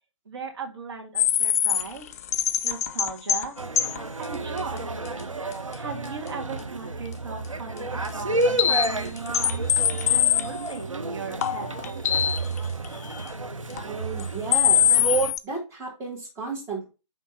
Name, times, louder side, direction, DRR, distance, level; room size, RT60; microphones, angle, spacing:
voice 1, 0.3-2.1 2.6-3.6 4.2-5.0 5.8-12.3, right 4 dB, 55° right, 0 dB, 2.0 m, -37 dB
sound 1, 1.1-3.5 3.8-4.0 4.6-4.7 5.1-5.2 5.5-5.6 8.0-8.1 8.4-10.8 11.4-12.6 12.8-12.9 13.8-13.9 14.2-14.3 14.5-15.4, left 10 dB, 30° left, 0.4 m, -22 dB
sound 2, 3.6-15.3, right 2 dB, 85° right, 0.8 m, -30 dB
voice 2, 13.8-15.0 15.4-16.9, right 4 dB, 15° right, -3 dB, 2.6 m, -34 dB
10.5 x 3.5 x 2.9 m, 0.29 s
figure-of-eight pair, 130°, 16 cm